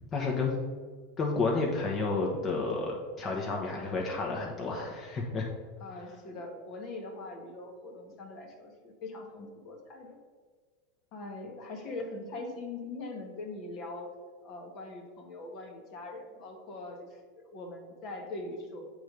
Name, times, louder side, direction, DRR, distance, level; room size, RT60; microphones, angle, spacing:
voice 1, 0.1-0.6 1.2-5.5, left 3 dB, 30° left, -2 dB, 1.1 m, -31 dB
voice 2, 5.8-10.2 11.1-14.1 14.4-18.9, left 2 dB, 50° left, 2 dB, 1.3 m, -42 dB
7.8 x 3.3 x 5.2 m, 1.5 s
hypercardioid pair, 100°, 0 cm